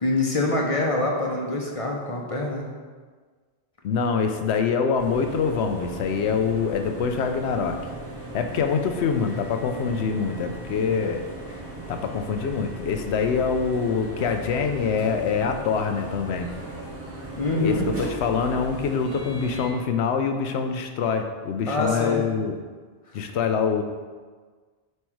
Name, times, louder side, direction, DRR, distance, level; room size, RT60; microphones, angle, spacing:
voice 1, 0.0-2.7 17.4-17.9 21.7-22.2, left 2 dB, 35° left, -1 dB, 0.8 m, -25 dB
voice 2, 3.8-7.8 8.3-11.2 11.9-16.5 17.6-22.6 23.1-23.8, left 6 dB, 80° left, 6 dB, 0.9 m, -25 dB
sound 1, 5.0-19.7, right 1 dB, 15° right, 1.3 m, -38 dB
7.7 x 3.2 x 4.6 m, 1.5 s
omnidirectional pair, 1.1 m